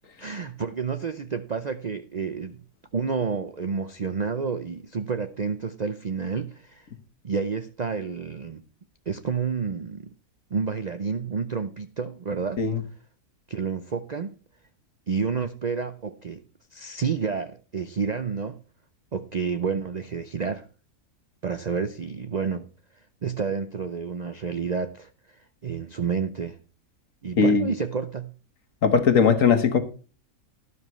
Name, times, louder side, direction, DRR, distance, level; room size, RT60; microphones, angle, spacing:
voice 1, 0.2-2.6 2.9-6.9 7.2-8.6 9.1-10.1 10.5-12.6 13.5-14.3 15.1-16.4 16.7-18.6 19.1-20.6 21.4-22.7 23.2-25.1 25.6-26.6 27.2-28.3, right 5 dB, 50° right, 0.5 m, -29 dB
voice 2, 27.4-27.7 28.8-29.8, left 5 dB, 60° left, 1.7 m, -19 dB
12.5 x 11.5 x 3.1 m
omnidirectional pair, 1.6 m